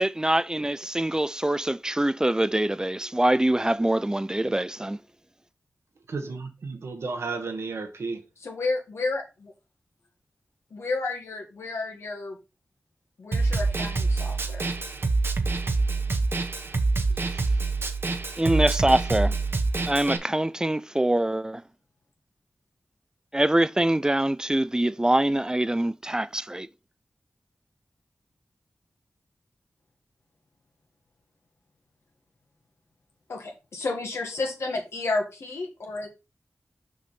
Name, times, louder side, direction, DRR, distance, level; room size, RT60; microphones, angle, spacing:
voice 1, 0.0-5.0 18.4-19.4 19.9-21.6 23.3-26.7, right 1 dB, 15° right, 0.4 m, -24 dB
voice 2, 6.1-8.2, right 4 dB, 80° right, 1.3 m, -33 dB
voice 3, 8.4-9.5 10.7-12.4 13.2-14.6 33.3-33.4 33.7-36.1, left 3 dB, 85° left, 1.8 m, -31 dB
Snare drum, 13.3-20.2, right 3 dB, 60° right, 0.9 m, -26 dB
6.1 x 5.1 x 4.2 m
cardioid pair, 50°, 4 cm